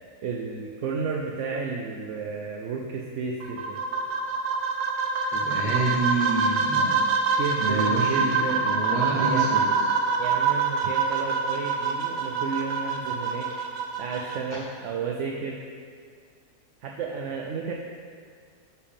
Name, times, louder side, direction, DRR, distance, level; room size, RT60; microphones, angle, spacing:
voice 1, 0.2-3.8 7.4-8.7 9.3-9.5 10.2-13.5 14.0-15.6 16.8-17.7, right 5 dB, 65° right, 0 dB, 0.8 m, -32 dB
sound 1, 3.4-14.4, right 4 dB, 90° right, 1.3 m, -25 dB
voice 2, 5.3-7.0 7.6-9.9, right 2 dB, 35° right, -7 dB, 1.0 m, -28 dB
12.0 x 4.5 x 3.5 m, 2.1 s
omnidirectional pair, 1.5 m